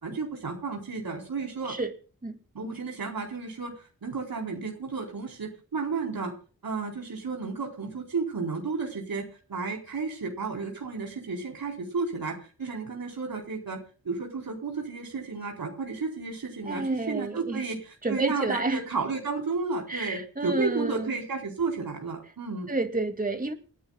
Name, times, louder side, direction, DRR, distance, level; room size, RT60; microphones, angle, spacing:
voice 1, 0.0-1.7 2.5-6.3 6.6-13.8 14.0-22.7, right 4 dB, 85° right, 0 dB, 4.4 m, -32 dB
voice 2, 16.7-17.6 18.0-18.8 19.9-21.1 22.7-23.5, right 2 dB, 25° right, 7 dB, 2.4 m, -30 dB
29.0 x 10.5 x 2.4 m, 0.37 s
wide cardioid pair, 80°, 34 cm